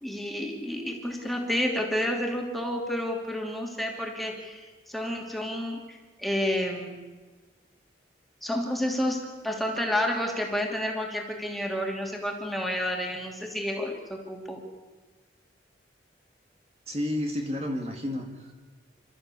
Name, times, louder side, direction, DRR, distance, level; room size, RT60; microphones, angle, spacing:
voice 1, 0.0-7.0 8.4-14.6, left 1 dB, ahead, 0 dB, 2.8 m, -30 dB
voice 2, 16.9-18.5, left 1 dB, 35° right, 2 dB, 2.2 m, -31 dB
29.0 x 13.5 x 8.4 m, 1.3 s
head